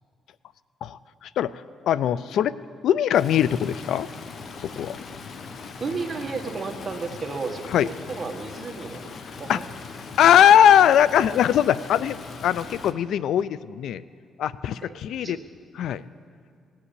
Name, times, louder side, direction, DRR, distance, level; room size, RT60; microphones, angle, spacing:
voice 1, 0.8-1.6 1.9-2.5 2.8-4.1 4.8-5.0 7.7-7.9 9.5-9.6 10.2-12.2 12.4-14.0 14.4-15.4 15.8-16.0, left 10 dB, 75° left, 18 dB, 0.3 m, -20 dB
Stream, 3.1-12.9, left 4 dB, 55° left, 0.9 m, -40 dB
voice 2, 5.8-9.1 9.4-9.7 14.8-14.9 15.2-15.4, right 4 dB, 35° right, 4 dB, 1.5 m, -33 dB
18.0 x 7.3 x 8.3 m, 2.2 s
cardioid pair, 90°, 0 cm